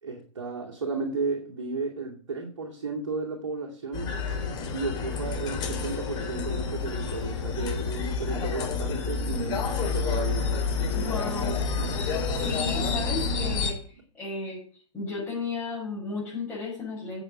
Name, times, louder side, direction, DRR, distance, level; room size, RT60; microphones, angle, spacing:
voice 1, 0.0-4.1 4.7-10.5, right 4 dB, 65° right, 2.4 m, -33 dB
sound 1, 3.9-13.7, left 4 dB, 25° left, 3.5 m, -29 dB
voice 2, 10.9-11.6 12.3-17.2, left 4 dB, 10° left, 6.4 m, -34 dB
9.7 x 7.9 x 7.6 m
figure-of-eight pair, 115°, 16 cm